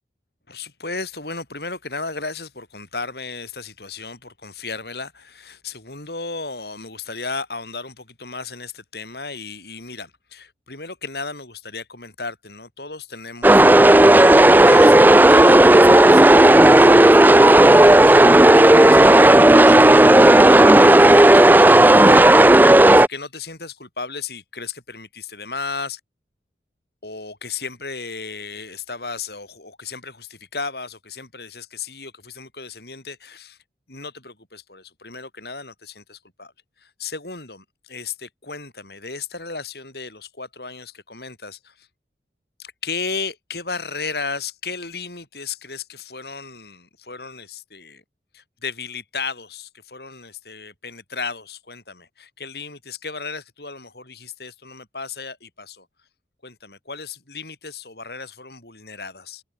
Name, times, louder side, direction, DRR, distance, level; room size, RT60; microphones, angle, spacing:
voice 1, 0.5-16.5 16.8-21.7 21.9-22.5 22.9-26.0 27.0-33.6 33.9-36.5 36.8-41.9 42.6-48.0 48.3-55.9 56.4-59.4, left 4 dB, 65° left, 7.7 m, -34 dB
sound 1, 13.4-23.1, right 1 dB, 10° right, 0.5 m, -10 dB
head